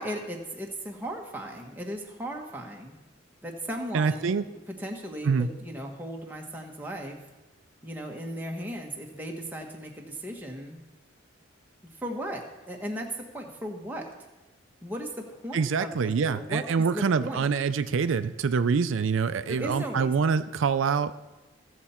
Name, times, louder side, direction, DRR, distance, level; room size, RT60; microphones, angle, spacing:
voice 1, 0.0-3.0 3.4-4.4 4.8-7.2 7.8-10.8 12.0-13.1 13.3-14.1 14.8-16.0 16.3-17.5 19.5-20.1, equal, 10° right, 0 dB, 1.2 m, -36 dB
voice 2, 3.9-4.4 5.2-5.5 15.5-21.1, right 5 dB, 80° right, 11 dB, 0.4 m, -25 dB
15.5 x 6.8 x 4.3 m, 1.1 s
head